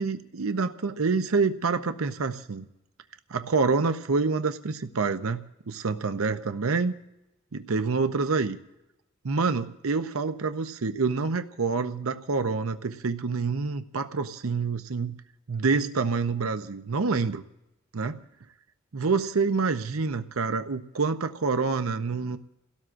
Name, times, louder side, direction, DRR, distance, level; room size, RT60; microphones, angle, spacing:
voice 1, 0.0-2.7 3.3-6.9 7.5-8.6 9.2-15.1 15.5-17.4 17.9-18.2 18.9-22.4, right 4 dB, 90° right, 9 dB, 0.7 m, -27 dB
30.0 x 17.0 x 2.5 m, 0.93 s
head